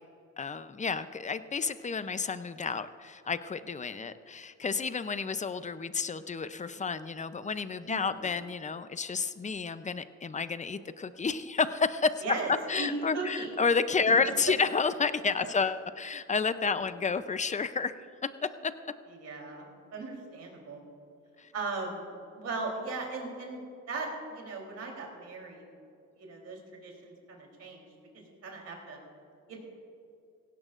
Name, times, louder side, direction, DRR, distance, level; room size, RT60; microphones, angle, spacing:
voice 1, 0.4-12.1 12.7-17.9 18.6-18.7, left 5 dB, 25° left, 12 dB, 0.6 m, -30 dB
voice 2, 7.9-8.3 12.2-12.5 12.8-13.5 15.4-15.5 19.1-20.9 21.5-22.1 22.4-25.6 26.2-27.9 28.1-29.0 29.5-29.6, right 3 dB, 55° right, 0 dB, 3.5 m, -38 dB
17.0 x 16.5 x 2.5 m, 2.5 s
cardioid pair, 90°, 30 cm